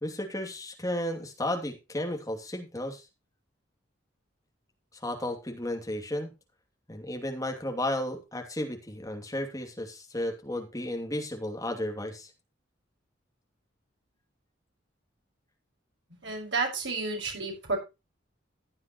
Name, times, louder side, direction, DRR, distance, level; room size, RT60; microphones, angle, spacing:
voice 1, 0.0-3.0 5.0-6.3 6.9-12.3, left 1 dB, 20° left, 3 dB, 2.6 m, -33 dB
voice 2, 16.2-17.8, right 3 dB, 65° right, 2 dB, 5.7 m, -31 dB
15.0 x 9.7 x 3.1 m, 0.27 s
head